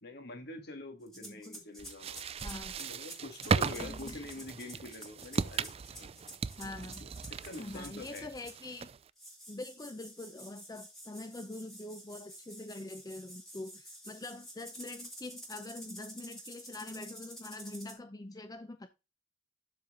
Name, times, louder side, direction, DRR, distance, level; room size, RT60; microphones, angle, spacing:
voice 1, 0.0-2.2 2.8-5.7 6.0-6.1 7.0-8.3, left 2 dB, 60° left, 2.0 m, -45 dB
sound 1, 1.1-8.7 9.2-18.0, equal, ahead, 3.0 m, -50 dB
voice 2, 1.2-1.6 2.4-2.7 3.8-4.3 6.6-7.0 7.6-8.9 9.5-18.9, left 2 dB, 20° left, 0.5 m, -44 dB
sound 2, 1.8-9.1, right 5 dB, 30° right, 0.4 m, -37 dB
12.0 x 4.6 x 3.7 m
head